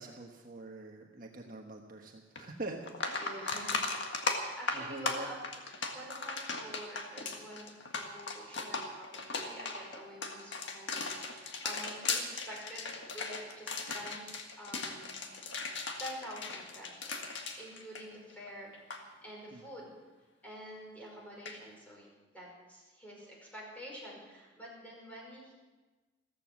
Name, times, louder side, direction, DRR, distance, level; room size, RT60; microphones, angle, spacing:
voice 1, 0.0-3.3 3.7-3.8 4.7-5.3 19.5-19.6, right 2 dB, 45° right, 1 dB, 1.3 m, -44 dB
sound 1, 2.4-2.5 2.8-18.5 18.7-19.0 21.4-21.6, left 4 dB, 60° left, 1.8 m, -37 dB
voice 2, 3.2-7.7 7.9-15.1 16.0-17.3 17.6-19.9 20.4-22.1 22.3-25.5, equal, 10° left, -3 dB, 5.2 m, -48 dB
15.0 x 14.5 x 6.2 m, 1.2 s
head